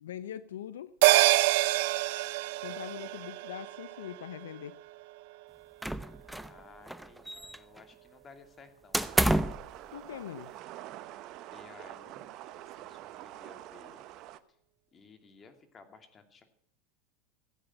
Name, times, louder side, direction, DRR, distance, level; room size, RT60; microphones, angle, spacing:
voice 1, 0.0-0.9 2.6-4.8 9.9-10.5, left 10 dB, 85° left, 0.5 m, -42 dB
sound 1, 1.0-5.7 6.1-6.2, right 20 dB, 70° right, 0.5 m, -27 dB
sound 2, 5.8-6.6 6.9-7.8 8.9-9.7, right 1 dB, 5° right, 0.8 m, -29 dB
voice 2, 6.4-9.1 11.5-14.1 14.9-16.4, left 5 dB, 30° left, 2.6 m, -56 dB
sound 3, 9.0-14.4, right 14 dB, 55° right, 0.9 m, -46 dB
15.5 x 8.9 x 7.7 m
hypercardioid pair, 100°, 0 cm